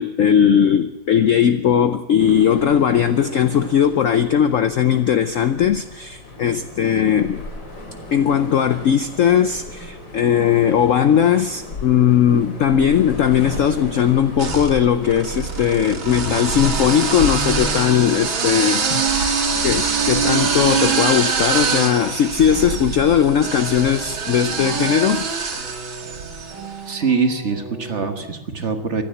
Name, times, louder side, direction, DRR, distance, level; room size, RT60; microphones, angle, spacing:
voice 1, 0.0-7.4 8.1-19.3 19.6-25.2, left 8 dB, 85° left, 12 dB, 0.7 m, -18 dB
sound 1, 2.2-18.8, left 2 dB, 70° left, 3.9 m, -34 dB
sound 2, 13.0-13.7 14.4-26.7, right 5 dB, 80° right, 2.8 m, -24 dB
sound 3, 15.3-28.2, right 4 dB, 45° left, 6.8 m, -38 dB
voice 2, 26.9-29.0, right 5 dB, 40° right, 7 dB, 1.4 m, -23 dB
15.5 x 11.0 x 8.5 m, 1.2 s
omnidirectional pair, 2.1 m